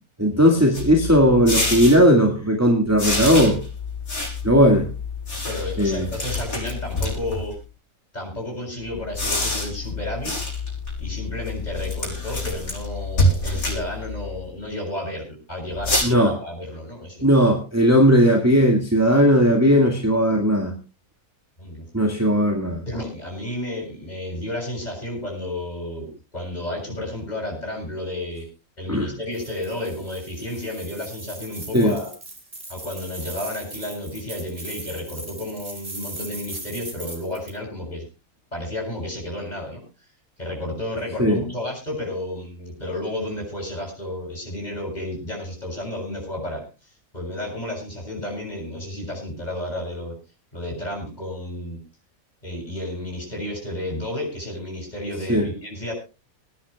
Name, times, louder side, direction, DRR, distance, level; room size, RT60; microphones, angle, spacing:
voice 1, 0.2-3.6 4.4-4.9 5.8-6.1 16.0-16.3 17.2-20.7 21.9-22.8 28.9-29.1 31.7-32.0 41.2-41.4 55.3-55.5, equal, 10° right, 0 dB, 1.8 m, -17 dB
sound 1, 0.7-2.0 3.0-7.5 9.0-14.4 15.8-16.0, left 2 dB, 70° left, 6.3 m, -26 dB
voice 2, 5.5-7.5 8.1-10.4 11.0-17.3 21.6-21.9 22.8-28.4 28.8-32.1 32.7-38.1 38.5-39.8 40.4-50.1 50.5-51.8 52.4-55.9, left 1 dB, 30° left, -1 dB, 7.4 m, -32 dB
sound 2, 29.3-37.6, right 2 dB, 35° right, 3.2 m, -39 dB
26.5 x 10.0 x 2.3 m, 0.32 s
omnidirectional pair, 1.5 m